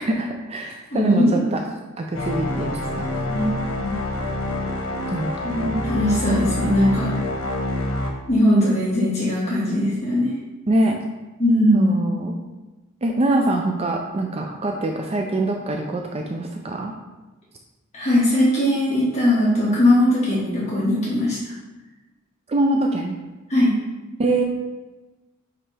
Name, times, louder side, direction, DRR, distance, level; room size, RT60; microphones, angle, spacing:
voice 1, 0.0-1.6 2.0-3.1 5.1-5.3 10.7-11.0 11.7-12.3 13.0-16.9 22.5-23.2 24.2-24.4, right 2 dB, 30° right, 2 dB, 0.4 m, -24 dB
voice 2, 0.9-1.3 3.3-4.0 5.4-7.1 8.3-10.3 11.4-11.9 17.9-21.4 23.5-23.7, left 1 dB, 35° left, -8 dB, 1.8 m, -19 dB
sound 1, 2.1-8.1, left 1 dB, 85° left, 1.1 m, -27 dB
8.5 x 3.3 x 3.3 m, 1.1 s
head